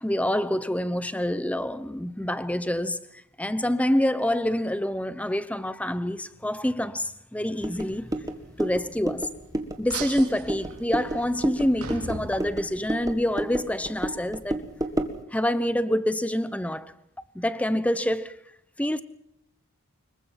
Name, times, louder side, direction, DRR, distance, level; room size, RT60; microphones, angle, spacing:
voice 1, 0.0-8.1 8.6-9.3 9.8-14.6 15.3-16.9 17.3-18.4 18.8-19.0, left 1 dB, 5° left, 0.9 m, -26 dB
sound 1, 7.6-15.2, right 1 dB, 15° right, 1.9 m, -32 dB
sound 2, 9.9-13.1, right 4 dB, 90° right, 3.0 m, -39 dB
25.5 x 22.5 x 5.8 m
head